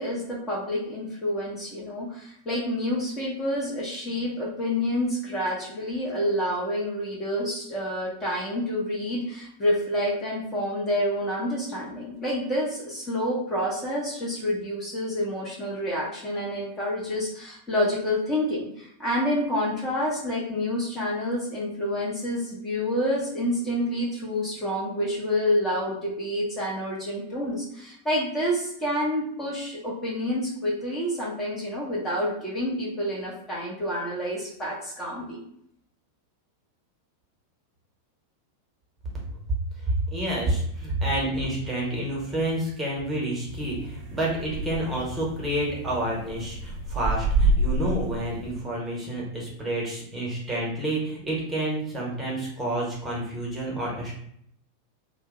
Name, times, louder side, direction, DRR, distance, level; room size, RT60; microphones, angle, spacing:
voice 1, 0.0-35.4, left 1 dB, 20° left, -5 dB, 0.8 m, -28 dB
voice 2, 39.9-54.1, right 1 dB, 15° right, -4 dB, 1.0 m, -29 dB
sound 1, 43.5-48.5, right 2 dB, 35° right, 0.9 m, -28 dB
2.6 x 2.1 x 3.6 m, 0.70 s
figure-of-eight pair, 90°, 0 cm